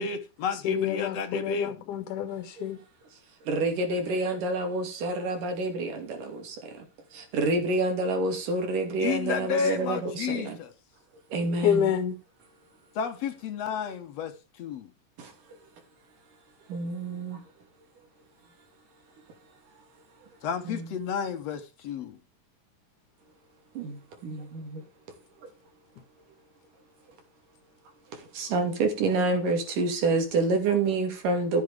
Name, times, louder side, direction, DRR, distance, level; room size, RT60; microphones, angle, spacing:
voice 1, 0.0-1.7 9.0-10.7 13.0-14.9 20.4-22.2, left 6 dB, 65° left, 2.0 m, -31 dB
voice 2, 0.5-2.8 11.6-12.2, left 9 dB, 80° left, 2.5 m, -28 dB
voice 3, 3.5-6.9 7.1-10.6 11.3-11.9 15.2-15.3 16.7-17.4 20.6-20.9 23.8-24.8 28.1-31.6, right 3 dB, 85° right, 4.3 m, -28 dB
13.5 x 8.0 x 5.0 m
omnidirectional pair, 3.6 m